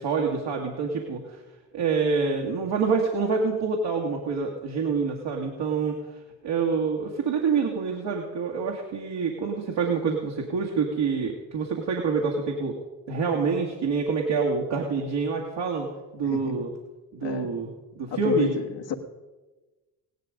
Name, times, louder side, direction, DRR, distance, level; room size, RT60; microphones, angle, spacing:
voice 1, 0.0-1.4 1.7-6.0 6.4-12.8 13.1-15.9 16.1-16.7 17.1-17.7 18.0-18.5, right 5 dB, 60° right, -1 dB, 2.1 m, -26 dB
voice 2, 16.2-16.7 17.2-17.7 18.1-18.9, left 6 dB, 60° left, 4 dB, 1.8 m, -31 dB
16.5 x 11.5 x 5.2 m, 1.2 s
hypercardioid pair, 50°, 48 cm